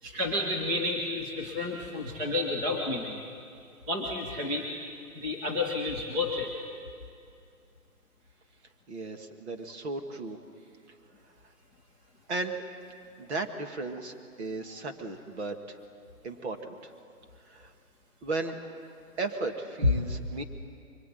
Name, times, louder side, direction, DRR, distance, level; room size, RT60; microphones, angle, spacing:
voice 1, 0.0-3.2 3.9-4.7 5.1-6.5 14.7-14.8 20.0-20.2, left 2 dB, 10° right, 0 dB, 1.0 m, -31 dB
voice 2, 8.9-10.4 12.3-12.6 13.2-15.8 16.2-16.9 17.5-17.7 18.2-18.6 19.2-20.4, right 3 dB, 45° right, 5 dB, 2.2 m, -35 dB
23.5 x 20.0 x 9.4 m, 2.3 s
hypercardioid pair, 165°, 46 cm